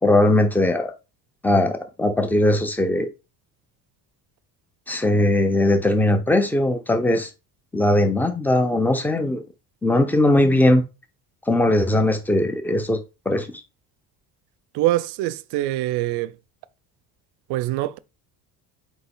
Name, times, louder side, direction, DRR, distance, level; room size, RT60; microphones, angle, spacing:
voice 1, 0.0-0.9 1.4-3.1 4.9-7.3 7.7-9.4 9.8-10.8 11.5-13.0 13.3-13.5, left 1 dB, 5° left, 0.5 m, -19 dB
voice 2, 14.7-16.3 17.5-18.0, right 15 dB, 75° right, 0.5 m, -24 dB
3.9 x 2.9 x 3.8 m
cardioid pair, 135°, 41 cm